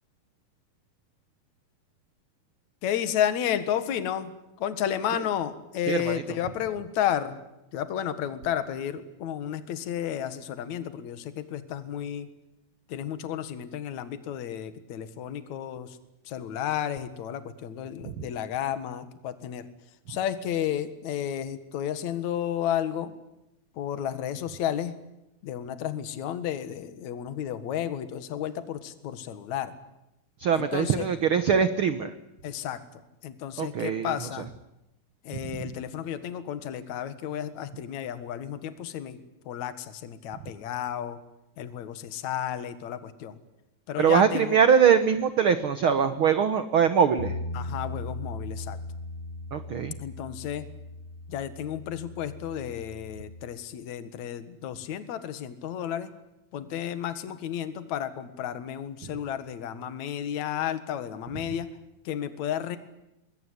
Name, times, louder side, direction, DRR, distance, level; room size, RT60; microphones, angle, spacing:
voice 1, 2.8-7.4 7.7-12.3 12.9-16.0 16.3-19.7 20.1-23.1 23.7-24.9 25.4-29.7 30.5-31.1 32.4-34.5 35.2-39.2 39.5-41.2 41.6-43.4 43.9-44.6 46.0-46.2 47.5-48.8 50.0-50.7 51.3-56.1 56.5-61.7 62.0-62.8, left 10 dB, 60° left, 11 dB, 2.7 m, -32 dB
voice 2, 5.9-6.2 30.4-32.1 33.6-34.1 44.0-47.4 49.5-49.9, right 7 dB, 75° right, 11 dB, 1.2 m, -22 dB
Bass guitar, 47.2-53.4, left 2 dB, 25° left, 5.5 m, -38 dB
24.0 x 21.5 x 9.8 m, 0.89 s
omnidirectional pair, 4.1 m